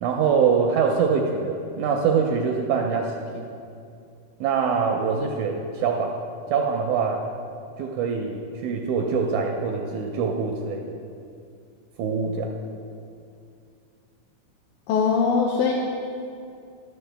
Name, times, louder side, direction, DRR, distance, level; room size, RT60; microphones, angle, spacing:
voice 1, 0.0-3.5 4.4-6.2 6.5-7.2 7.8-11.0 12.0-12.5, right 5 dB, 80° right, 2 dB, 1.9 m, -24 dB
voice 2, 14.9-15.7, left 5 dB, 80° left, -1 dB, 2.0 m, -21 dB
12.5 x 6.4 x 3.4 m, 2.4 s
omnidirectional pair, 3.8 m